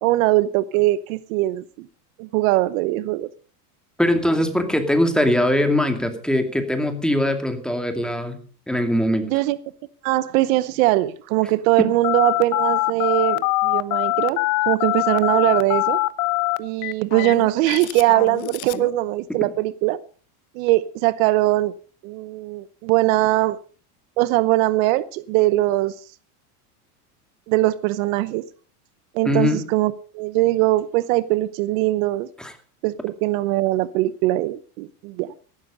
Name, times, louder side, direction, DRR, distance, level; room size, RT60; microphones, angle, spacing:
voice 1, 0.0-1.9 2.2-3.3 9.2-9.6 10.0-14.4 14.7-16.0 16.6-20.0 20.5-21.7 22.0-23.6 24.2-25.9 27.5-28.4 29.1-32.3 32.8-35.3, right 17 dB, 65° right, 0.9 m, -21 dB
voice 2, 4.0-8.4 8.7-9.3 11.8-11.9 29.3-29.6 32.4-32.5, left 1 dB, ahead, 2.4 m, -21 dB
Telephone, 12.0-18.9, left 22 dB, 70° left, 1.1 m, -23 dB
14.5 x 12.5 x 5.2 m
supercardioid pair, 125°, 45 cm